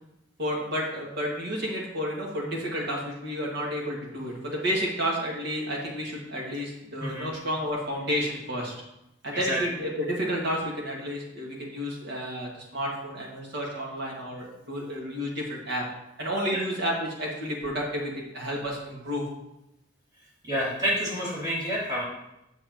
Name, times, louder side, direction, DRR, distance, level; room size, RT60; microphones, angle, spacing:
voice 1, 0.4-8.8 9.2-15.8 16.2-19.3, equal, 60° right, -2 dB, 2.0 m, -31 dB
voice 2, 20.4-22.0, equal, 20° right, -6 dB, 2.3 m, -29 dB
7.8 x 6.8 x 3.0 m, 0.86 s
head